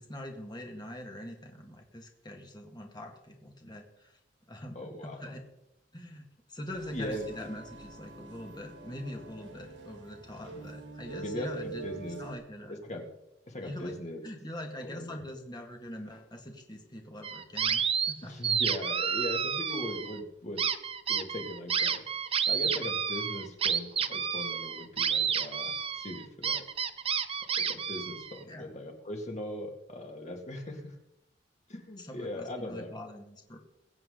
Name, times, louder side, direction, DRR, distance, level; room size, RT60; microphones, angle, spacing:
voice 1, 0.0-4.2 4.5-5.4 5.9-11.9 12.2-12.8 13.6-14.0 14.2-18.4 28.5-28.7 32.0-33.6, left 1 dB, 25° left, 2 dB, 2.0 m, -43 dB
voice 2, 4.8-5.3 6.9-7.5 11.2-12.2 12.7-13.1 13.5-14.2 14.8-15.2 18.2-20.6 21.1-22.0 22.5-26.6 27.6-30.9 31.7-33.0, left 1 dB, 40° left, 3 dB, 2.2 m, -39 dB
sound 1, 6.7-12.4, right 3 dB, 70° right, 3.2 m, -45 dB
sound 2, 17.2-18.1 18.4-20.2 20.6-28.4, right 7 dB, 30° right, 0.6 m, -30 dB
22.5 x 7.7 x 3.9 m, 0.88 s
head